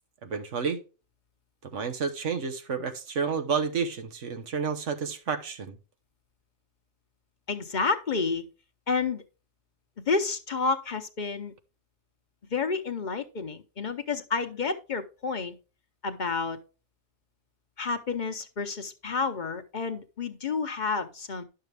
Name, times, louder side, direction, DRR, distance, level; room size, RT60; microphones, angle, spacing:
voice 1, 0.2-0.8 1.7-5.8, right 6 dB, 90° right, 1.4 m, -30 dB
voice 2, 7.5-8.4 8.9-9.2 10.1-11.5 12.5-15.6 16.0-16.6 17.8-21.4, left 4 dB, 45° left, 0.8 m, -30 dB
11.0 x 6.6 x 3.3 m
omnidirectional pair, 1.2 m